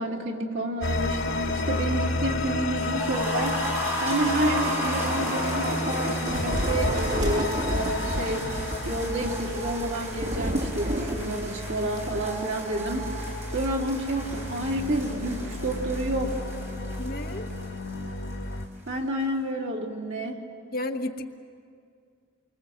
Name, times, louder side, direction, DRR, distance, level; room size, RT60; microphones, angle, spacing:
voice 1, 0.0-3.6 4.0-8.5 8.8-16.4 18.9-20.4, right 1 dB, 75° right, -1 dB, 3.2 m, -30 dB
sound 1, 0.8-18.7, left 2 dB, 80° left, 1.9 m, -32 dB
sound 2, 2.8-18.6 18.9-19.0 19.3-19.4, right 1 dB, 35° right, 6.6 m, -36 dB
Thunder / Rain, 4.2-12.8 13.1-13.3 13.6-13.9, equal, 60° right, 3.0 m, -32 dB
voice 2, 17.0-17.5 20.7-21.3, left 1 dB, 50° left, 4 dB, 1.3 m, -32 dB
28.5 x 24.0 x 7.9 m, 2.2 s
head